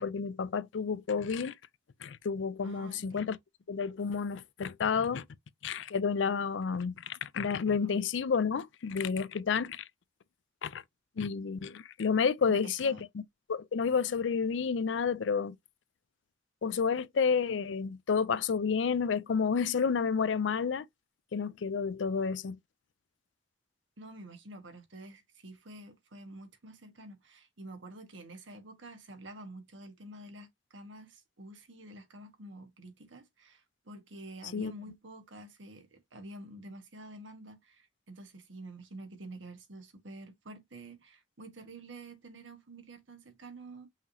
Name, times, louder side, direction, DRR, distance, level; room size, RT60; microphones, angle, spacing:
voice 1, 0.0-1.5 2.0-3.4 3.7-5.2 5.6-9.8 10.6-10.8 11.2-13.2 13.5-15.5 16.6-20.9 21.3-22.6 34.5-34.7, left 6 dB, 75° left, 0.4 m, -30 dB
voice 2, 2.6-3.4 7.6-8.0 12.5-13.0 24.0-43.9, right 1 dB, 85° right, 1.3 m, -48 dB
5.6 x 3.0 x 2.7 m
head